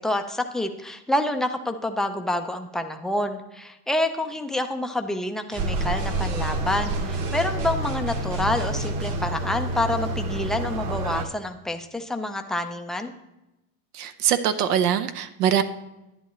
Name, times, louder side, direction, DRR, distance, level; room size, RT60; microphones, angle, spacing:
voice 1, 0.0-13.1, left 1 dB, ahead, 5 dB, 0.3 m, -27 dB
sound 1, 5.5-9.3, right 1 dB, 70° right, 2.6 m, -36 dB
sound 2, 5.6-11.3, right 1 dB, 45° right, 1.2 m, -28 dB
voice 2, 13.9-15.6, right 9 dB, 85° right, 10 dB, 0.8 m, -23 dB
11.0 x 10.0 x 3.0 m, 0.94 s
supercardioid pair, 115°, 45 cm